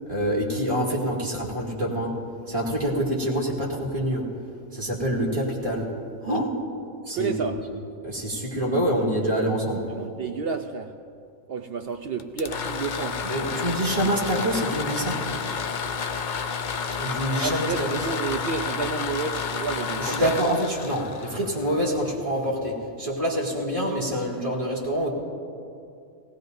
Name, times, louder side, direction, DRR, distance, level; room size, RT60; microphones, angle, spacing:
voice 1, 0.1-2.2 2.5-4.3 4.7-5.9 6.2-6.5 7.1-7.6 8.0-9.9 13.2-15.2 17.0-18.1 20.0-25.1, equal, 20° right, -4 dB, 2.5 m, -26 dB
voice 2, 7.1-7.6 9.9-10.9 11.5-13.2 15.5-15.6 17.3-20.3, right 5 dB, 60° right, 5 dB, 0.6 m, -31 dB
sound 1, 12.2-22.0, left 6 dB, 70° left, 0.4 m, -30 dB
19.0 x 18.0 x 2.7 m, 2.4 s
omnidirectional pair, 1.5 m